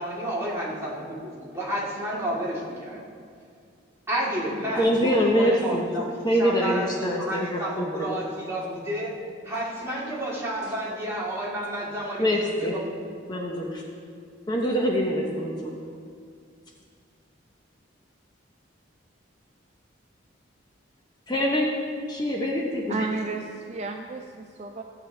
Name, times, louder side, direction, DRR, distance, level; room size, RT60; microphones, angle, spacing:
voice 1, 0.0-3.1 4.1-6.0 6.4-9.1 9.4-12.8, right 1 dB, 15° right, -7 dB, 2.1 m, -31 dB
voice 2, 4.8-5.9 6.2-8.2 12.2-12.8 13.3-13.8 14.5-15.7 21.3-21.7 22.1-23.1, equal, 20° left, -1 dB, 0.8 m, -24 dB
voice 3, 22.9-24.8, right 3 dB, 35° right, 4 dB, 0.4 m, -32 dB
15.0 x 7.8 x 3.3 m, 2.3 s
head